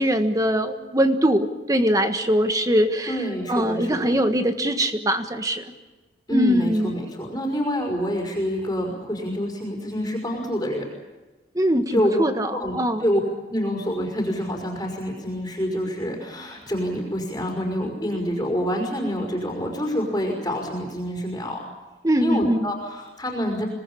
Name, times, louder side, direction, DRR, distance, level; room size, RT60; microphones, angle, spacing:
voice 1, 0.0-5.7 6.3-7.1 11.5-13.1 22.0-22.7, equal, 20° right, 8 dB, 1.5 m, -22 dB
voice 2, 3.1-4.2 6.3-10.9 11.9-12.2 12.5-13.2 13.5-21.6 22.2-23.7, equal, 15° left, -1 dB, 5.1 m, -27 dB
25.5 x 19.0 x 8.7 m, 1.2 s
head